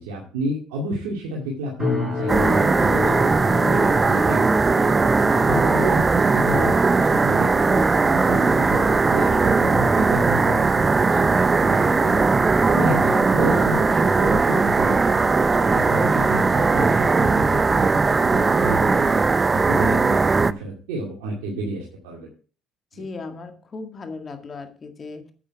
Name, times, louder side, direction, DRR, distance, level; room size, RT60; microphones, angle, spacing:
voice 1, 0.0-4.8 5.3-12.2 12.7-15.3 15.6-19.2 19.5-22.3 22.9-23.0, right 1 dB, 85° right, -2 dB, 2.3 m, -30 dB
sound 1, 1.8-17.0 17.3-17.7 18.2-18.4, left 3 dB, 5° left, 5.6 m, -33 dB
sound 2, 2.3-20.5, right 4 dB, 30° right, 0.6 m, -19 dB
voice 2, 22.9-25.3, left 4 dB, 40° left, 6 dB, 1.9 m, -37 dB
8.6 x 8.5 x 4.6 m, 0.40 s
hypercardioid pair, 65°, 0 cm